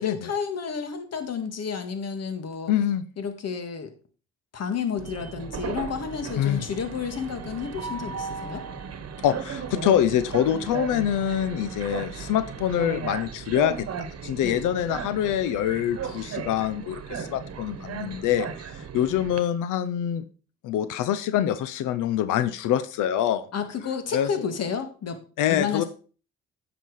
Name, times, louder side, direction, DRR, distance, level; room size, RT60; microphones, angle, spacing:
voice 1, 0.0-2.7 3.2-3.9 4.5-8.7 14.4-14.6 23.5-25.2 25.5-25.8, left 6 dB, 55° left, 8 dB, 1.9 m, -31 dB
voice 2, 2.7-3.0 6.4-6.6 9.2-13.9 14.2-20.2 20.6-23.5 24.1-24.3 25.4-25.8, left 11 dB, 90° left, 13 dB, 0.7 m, -25 dB
Train, 5.0-19.4, right 7 dB, 55° right, 1.2 m, -36 dB
9.3 x 6.1 x 4.8 m, 0.38 s
cardioid pair, 90°, 30 cm